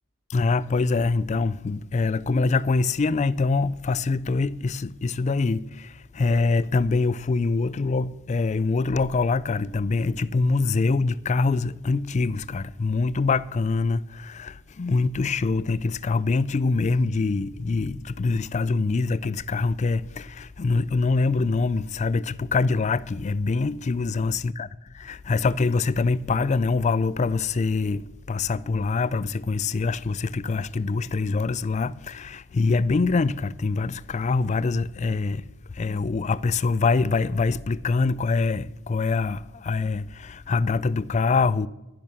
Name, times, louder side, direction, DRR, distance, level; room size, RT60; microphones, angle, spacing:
voice 1, 0.3-24.7 24.9-41.7, left 4 dB, 30° left, 0.3 m, -24 dB
11.0 x 10.5 x 6.3 m
head